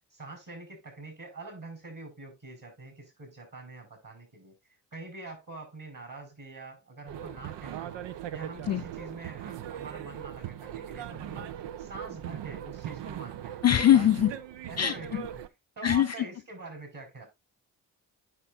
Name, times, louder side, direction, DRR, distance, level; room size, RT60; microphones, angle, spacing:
voice 1, 0.1-4.6 4.9-8.0 8.3-11.5 11.8-13.6 14.6-15.4 15.7-17.2, right 3 dB, 40° right, 5.0 m, -44 dB
sound 1, 7.1-15.5, right 11 dB, 60° right, 0.7 m, -39 dB
voice 2, 13.6-14.3 14.8-15.2 15.8-16.2, left 11 dB, 35° left, 0.4 m, -22 dB
9.9 x 5.6 x 2.4 m
hypercardioid pair, 40°, 48 cm